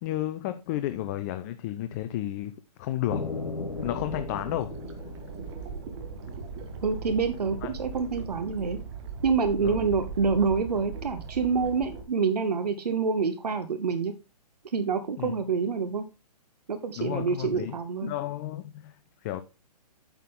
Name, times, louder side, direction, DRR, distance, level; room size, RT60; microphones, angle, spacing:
voice 1, 0.0-3.3 3.8-4.8 7.6-7.7 9.6-9.9 15.2-15.4 17.0-19.4, left 13 dB, 25° left, 0.4 m, -32 dB
sound 1, 3.1-7.0, left 4 dB, 80° left, 1.9 m, -37 dB
sound 2, 3.7-12.0, right 6 dB, 40° right, 1.7 m, -39 dB
voice 2, 6.8-8.8 9.2-14.1 14.7-16.1 16.7-18.1, right 5 dB, 75° right, 0.9 m, -27 dB
9.0 x 6.0 x 3.7 m
figure-of-eight pair, 130°, 21 cm